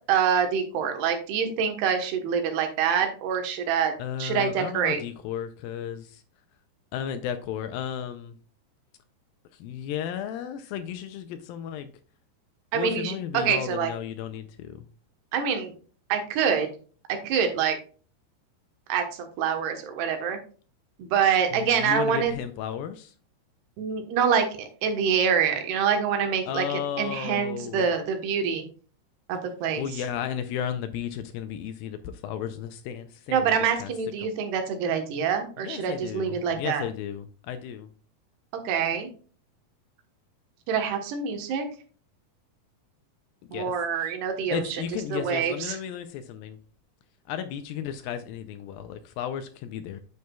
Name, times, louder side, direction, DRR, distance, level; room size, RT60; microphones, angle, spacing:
voice 1, 0.1-3.9 4.2-5.0 12.7-13.9 15.3-15.7 16.1-16.7 17.1-17.8 18.9-20.4 21.0-22.3 23.8-26.7 27.0-28.7 29.3-29.8 33.3-36.8 38.6-39.1 40.7-41.7 43.5-44.6 45.1-45.8, right 7 dB, 80° right, 5 dB, 3.2 m, -25 dB
voice 2, 4.0-6.2 6.9-8.4 9.5-11.9 12.7-14.9 21.5-23.1 26.5-27.9 29.8-33.5 33.8-33.9 34.2-34.3 35.6-37.9 43.4-44.1 44.5-46.6 47.3-50.0, left 9 dB, 80° left, 9 dB, 2.1 m, -34 dB
9.3 x 6.8 x 2.3 m, 0.40 s
omnidirectional pair, 4.6 m